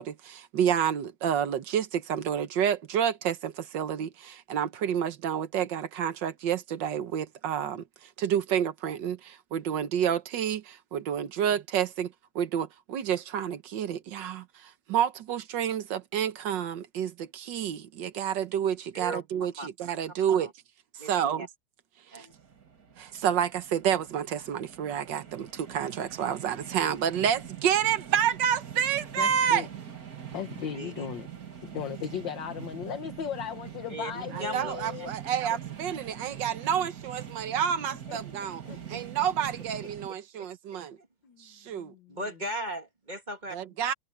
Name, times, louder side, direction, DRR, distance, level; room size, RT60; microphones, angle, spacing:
voice 1, 0.0-20.5 21.0-21.5 22.1-22.3 23.0-29.7 34.3-38.6 38.9-41.0 41.4-41.9 43.5-43.9, right 9 dB, 60° right, 1.6 m, -29 dB
voice 2, 21.0-21.5 22.1-22.3 30.7-31.1 33.9-34.8 38.4-38.8 40.4-40.5 41.0-41.1 42.1-43.6, right 1 dB, 20° right, 2.0 m, -37 dB
sound 1, 22.3-40.1, right 9 dB, 45° right, 2.2 m, -43 dB
voice 3, 29.2-29.7 30.3-35.1 38.1-38.2 38.6-38.8 41.2-42.3, left 9 dB, 60° left, 1.8 m, -37 dB
omnidirectional pair, 2.4 m